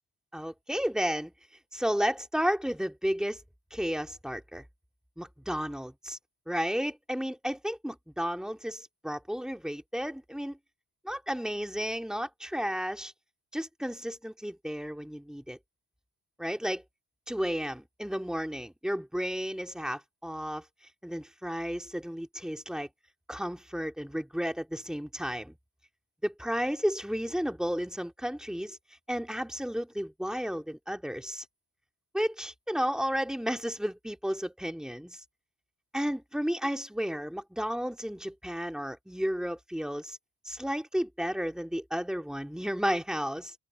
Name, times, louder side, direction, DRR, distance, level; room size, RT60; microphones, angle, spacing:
voice 1, 0.3-1.3 1.7-3.4 3.7-4.6 5.2-6.2 6.5-10.6 11.0-13.1 13.5-15.6 16.4-16.8 17.3-20.6 21.0-22.9 23.3-25.5 26.2-28.8 29.1-31.4 32.1-35.2 35.9-40.2 40.4-43.5, equal, ahead, 2.9 m, -32 dB
supercardioid pair, 55°, 40 cm